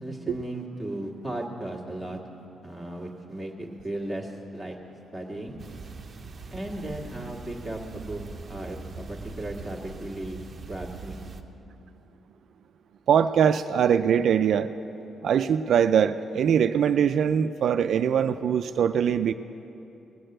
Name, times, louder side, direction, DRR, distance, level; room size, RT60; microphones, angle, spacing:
voice 1, 0.0-2.2 2.6-4.8 5.1-5.6 6.5-10.4 10.7-11.2, right 1 dB, 5° left, 0 dB, 1.5 m, -36 dB
sound 1, 5.6-11.4, right 4 dB, 30° right, 0.7 m, -42 dB
voice 2, 13.1-14.7 15.2-19.3, right 8 dB, 60° right, 9 dB, 0.3 m, -22 dB
18.5 x 6.6 x 7.7 m, 2.9 s
cardioid pair, 140°, 0 cm